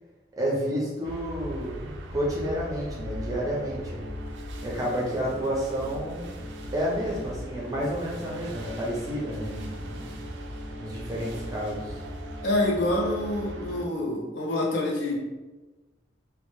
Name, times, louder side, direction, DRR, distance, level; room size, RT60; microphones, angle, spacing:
voice 1, 0.3-4.0 4.6-6.3 6.7-10.1 10.8-12.0, equal, 20° right, -4 dB, 0.5 m, -30 dB
sound 1, 1.0-13.9, equal, 75° right, 0.3 m, -39 dB
sound 2, 3.0-14.4, left 1 dB, 25° left, 0.6 m, -44 dB
voice 2, 12.4-15.2, left 1 dB, 75° left, -2 dB, 0.6 m, -26 dB
2.1 x 2.0 x 3.0 m, 1.2 s
head